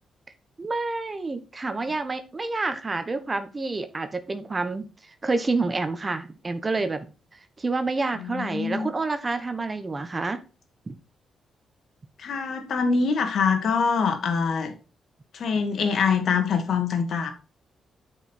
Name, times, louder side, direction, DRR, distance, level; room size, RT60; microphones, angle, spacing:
voice 1, 0.6-4.9 5.2-7.1 7.6-10.4 10.9-11.0, right 3 dB, 30° right, 1.0 m, -28 dB
voice 2, 8.2-8.9 12.2-14.7 15.3-17.3, left 5 dB, 65° left, 1.9 m, -24 dB
8.8 x 5.1 x 4.3 m
cardioid pair, 70°, 0 cm